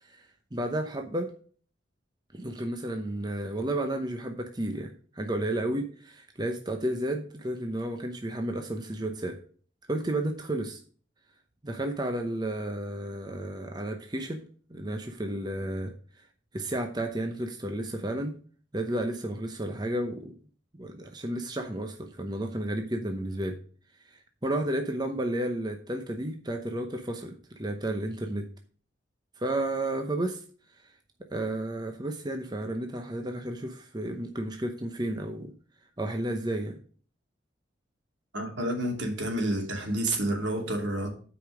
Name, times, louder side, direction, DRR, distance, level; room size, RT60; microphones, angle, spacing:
voice 1, 0.0-1.3 2.3-9.4 9.9-10.8 11.6-14.4 14.7-15.9 16.5-18.3 18.7-20.3 20.7-23.6 24.1-28.5 29.4-30.4 31.3-35.5 36.0-36.8, right 1 dB, 20° right, 4 dB, 0.8 m, -32 dB
voice 2, 38.3-41.1, right 1 dB, 75° right, 1 dB, 2.6 m, -29 dB
8.4 x 5.0 x 6.2 m, 0.43 s
head